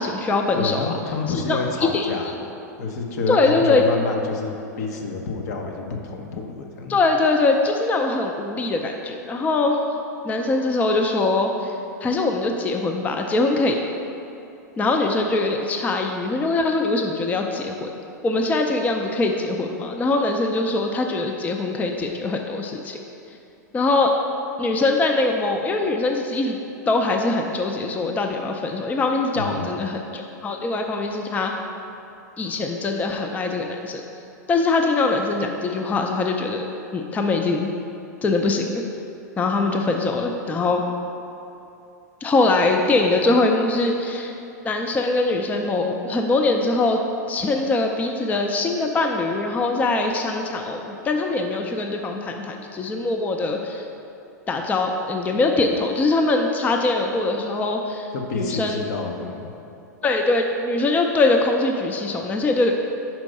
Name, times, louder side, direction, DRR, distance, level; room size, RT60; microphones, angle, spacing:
voice 1, 0.0-1.0 1.5-2.1 3.3-3.8 6.9-9.8 10.2-11.8 12.0-13.8 14.8-17.9 18.2-23.0 23.7-24.2 24.6-26.6 26.9-31.5 32.4-34.0 34.5-36.6 36.9-37.7 38.2-38.8 39.4-40.9 42.2-44.3 44.6-47.0 47.3-53.8 54.5-58.8 60.0-62.7, left 3 dB, 15° left, 3 dB, 0.4 m, -22 dB
voice 2, 0.6-2.3 2.8-7.0 29.4-29.7 58.1-59.5, left 3 dB, 65° left, 2 dB, 0.8 m, -28 dB
5.2 x 4.6 x 5.3 m, 2.8 s
hypercardioid pair, 105°, 10 cm